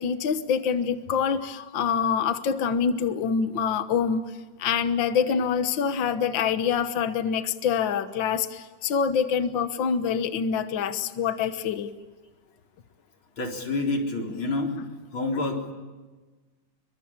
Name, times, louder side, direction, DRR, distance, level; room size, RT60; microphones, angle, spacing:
voice 1, 0.0-4.2 4.6-11.9 15.3-15.4, left 7 dB, 70° left, 10 dB, 1.1 m, -25 dB
voice 2, 13.4-14.8 15.1-15.7, left 2 dB, 40° left, 2 dB, 4.6 m, -28 dB
28.0 x 23.5 x 8.8 m, 1.3 s
omnidirectional pair, 3.8 m